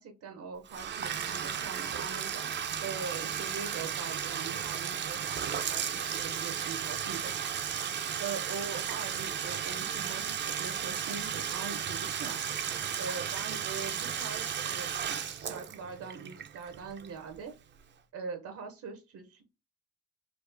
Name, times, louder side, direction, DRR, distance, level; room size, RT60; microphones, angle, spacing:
voice 1, 0.0-2.5 2.8-7.3 8.2-12.4 13.0-17.5 18.1-19.5, right 5 dB, 75° right, 5 dB, 0.8 m, -42 dB
Bathtub (filling or washing), 0.6-17.4, right 8 dB, 40° right, 0.5 m, -34 dB
4.4 x 2.4 x 2.5 m, 0.29 s
cardioid pair, 90°, 30 cm